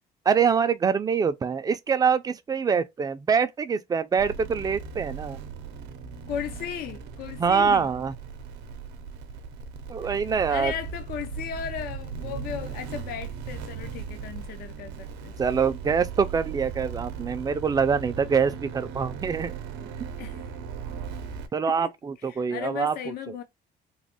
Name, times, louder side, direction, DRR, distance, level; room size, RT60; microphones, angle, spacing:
voice 1, 0.3-5.4 7.4-8.1 9.9-10.7 15.4-19.5 21.5-23.0, right 6 dB, 20° right, 0.4 m, -24 dB
sound 1, 4.2-21.5, right 6 dB, 85° right, 0.6 m, -38 dB
voice 2, 6.3-7.9 10.5-15.3 20.2-20.4 21.7-21.9 22.2-23.4, left 8 dB, 65° left, 0.5 m, -36 dB
3.1 x 2.1 x 2.8 m
cardioid pair, 110°, 17 cm